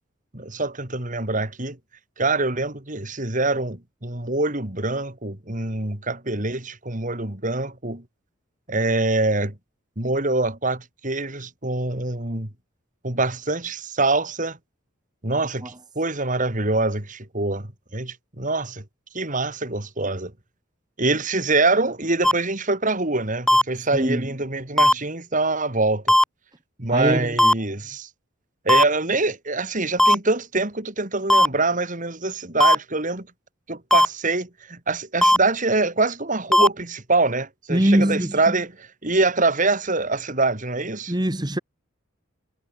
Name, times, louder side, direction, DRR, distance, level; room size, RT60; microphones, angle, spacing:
voice 1, 0.3-1.8 2.2-8.0 8.7-9.5 10.0-12.5 13.0-14.6 15.2-18.8 19.1-20.3 21.0-26.2 26.8-28.1 28.6-33.3 33.7-41.1, right 2 dB, 40° right, 3.3 m, -24 dB
sound 1, 22.2-22.3 23.5-23.6 24.8-24.9 26.1-26.2 27.4-27.5 28.7-28.8 30.0-30.2 31.3-31.5 32.6-32.8 33.9-34.1 35.2-35.4 36.5-36.7, left 1 dB, ahead, 1.0 m, -15 dB
voice 2, 23.9-24.3 26.9-27.3 37.7-38.6 41.1-41.6, right 1 dB, 20° right, 1.8 m, -22 dB
head